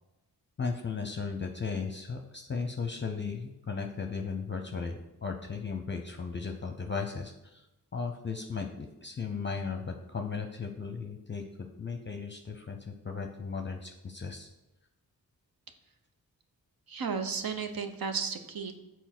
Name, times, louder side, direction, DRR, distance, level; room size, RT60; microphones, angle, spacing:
voice 1, 0.6-7.7 7.9-12.8 13.0-14.5, left 5 dB, 30° left, 4 dB, 0.6 m, -36 dB
voice 2, 16.9-18.8, right 5 dB, 65° right, 7 dB, 0.9 m, -34 dB
7.0 x 4.5 x 6.0 m, 0.96 s
cardioid pair, 85°, 38 cm